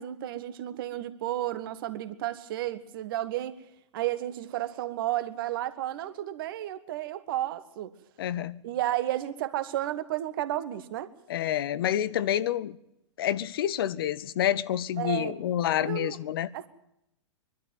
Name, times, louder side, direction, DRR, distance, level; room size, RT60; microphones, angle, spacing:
voice 1, 0.0-3.6 3.9-7.9 8.6-11.1 15.0-15.4 15.8-16.2 16.5-16.7, right 13 dB, 50° right, 1.5 m, -32 dB
voice 2, 8.2-8.6 11.3-12.8 13.2-16.5, left 11 dB, 55° left, 0.8 m, -28 dB
23.5 x 12.5 x 9.2 m
figure-of-eight pair, 100°, 15 cm